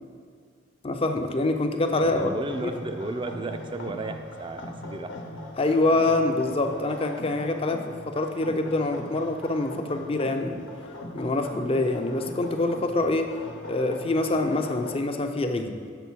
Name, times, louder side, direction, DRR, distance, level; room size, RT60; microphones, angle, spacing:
voice 1, 0.8-2.7 5.6-10.7 11.1-13.3 13.7-15.8, left 2 dB, 30° left, 6 dB, 0.5 m, -25 dB
sound 1, 1.8-15.0, left 1 dB, 80° left, 1.0 m, -40 dB
voice 2, 2.0-5.1, right 2 dB, 25° right, 7 dB, 0.4 m, -34 dB
6.8 x 6.4 x 4.6 m, 2.2 s
head